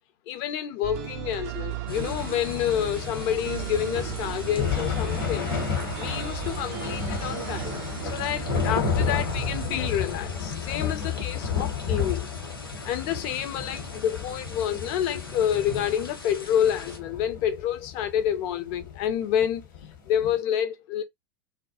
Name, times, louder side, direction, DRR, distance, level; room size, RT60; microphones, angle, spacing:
voice 1, 0.3-5.5 6.0-12.3 12.8-19.7 20.1-21.0, left 10 dB, 40° left, 0.5 m, -28 dB
sound 1, 0.8-10.7, right 14 dB, 45° right, 0.4 m, -36 dB
sound 2, 1.9-17.0, left 2 dB, 85° left, 0.6 m, -43 dB
sound 3, 1.9-20.4, left 6 dB, 60° left, 0.9 m, -32 dB
2.1 x 2.1 x 2.7 m
figure-of-eight pair, 90°, 12 cm